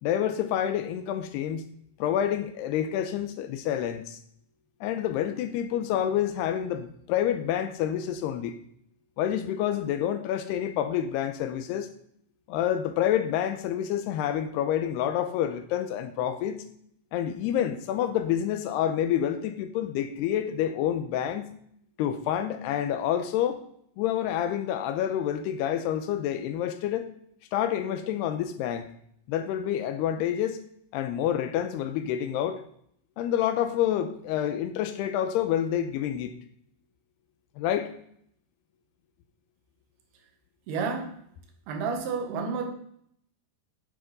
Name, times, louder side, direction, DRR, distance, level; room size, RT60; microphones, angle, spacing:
voice 1, 0.0-1.7 2.0-4.2 4.8-8.6 9.2-11.9 12.5-16.6 17.1-21.5 22.0-23.6 24.0-27.1 27.5-28.9 29.3-30.6 30.9-32.6 33.2-36.3 37.6-37.9, left 10 dB, 80° left, 10 dB, 2.7 m, -28 dB
voice 2, 40.7-41.2 41.7-42.7, right 5 dB, 70° right, 5 dB, 3.3 m, -30 dB
9.7 x 7.7 x 5.1 m, 0.67 s
omnidirectional pair, 4.8 m